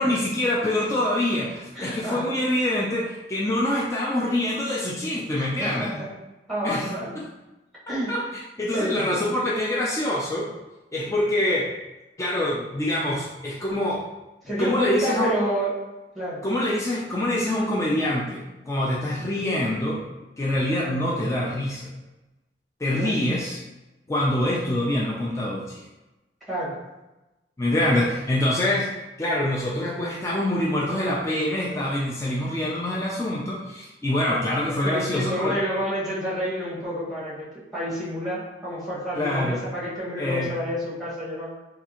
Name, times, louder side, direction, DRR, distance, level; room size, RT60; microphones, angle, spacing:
voice 1, 0.0-5.9 6.6-6.9 8.1-8.2 8.6-10.5 10.9-11.7 12.2-14.0 14.6-15.3 16.4-20.0 20.4-21.9 22.8-23.6 24.1-25.8 27.6-28.9 29.2-35.5 39.2-39.6 40.2-40.5, left 1 dB, 15° left, -4 dB, 0.4 m, -25 dB
voice 2, 1.7-2.3 5.3-6.1 6.5-7.1 7.9-8.3 8.7-9.2 14.4-15.8 16.1-16.4 22.9-23.2 26.5-26.8 34.8-41.5, equal, ahead, -9 dB, 1.4 m, -29 dB
3.5 x 2.4 x 2.9 m, 1.0 s
head